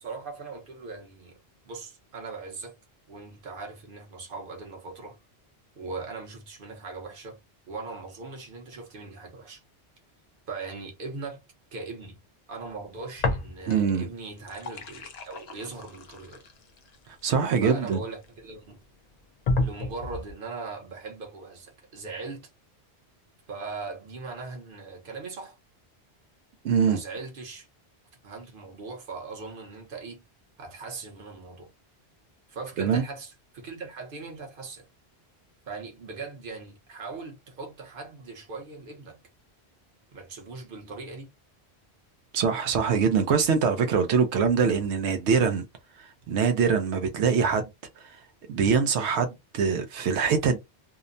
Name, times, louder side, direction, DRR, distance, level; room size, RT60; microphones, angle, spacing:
voice 1, 0.0-1.4 1.6-2.8 3.1-5.2 5.8-7.4 7.7-9.6 10.5-11.4 11.7-12.2 12.5-16.5 17.6-18.8 19.6-22.5 23.5-25.6 26.8-27.7 28.2-30.2 30.6-31.7 32.5-34.8 35.7-39.2 40.1-41.3, right 4 dB, 55° right, 1.0 m, -40 dB
sound 1, 13.2-14.0 14.3-18.3 18.8-18.9 19.5-20.3, left 2 dB, 55° left, 0.5 m, -31 dB
voice 2, 13.7-14.1 17.2-18.0 26.6-27.0 32.8-33.0 42.3-45.6 46.0-47.7 48.0-48.2 48.5-50.6, right 6 dB, 90° right, 0.9 m, -24 dB
2.7 x 2.1 x 2.5 m
omnidirectional pair, 1.1 m